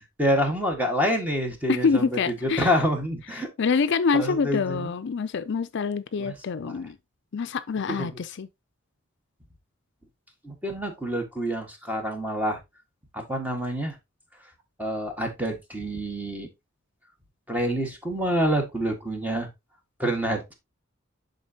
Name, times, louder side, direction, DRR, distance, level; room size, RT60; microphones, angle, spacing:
voice 1, 0.0-3.5 4.1-4.9 6.2-6.3 6.6-6.8 7.9-8.1 10.4-12.6 13.1-13.9 14.8-16.5 17.5-19.5 20.0-20.5, equal, 10° right, 1.6 m, -27 dB
voice 2, 1.7-2.7 3.3-7.0 7.3-8.5, left 5 dB, 60° left, 0.5 m, -26 dB
11.0 x 3.9 x 2.8 m
head